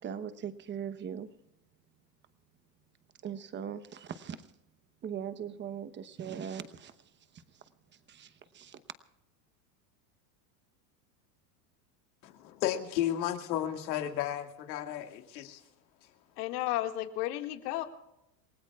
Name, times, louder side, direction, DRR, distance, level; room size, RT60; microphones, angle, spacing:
voice 1, 0.0-1.3 3.2-4.4 5.0-6.9 7.3-7.6 8.1-8.8, right 8 dB, 20° right, 12 dB, 0.9 m, -40 dB
voice 2, 12.2-15.6, left 11 dB, 85° left, 5 dB, 2.1 m, -33 dB
voice 3, 16.4-17.8, left 15 dB, 65° left, 5 dB, 2.1 m, -33 dB
28.0 x 18.0 x 2.4 m, 0.87 s
supercardioid pair, 135°, 49 cm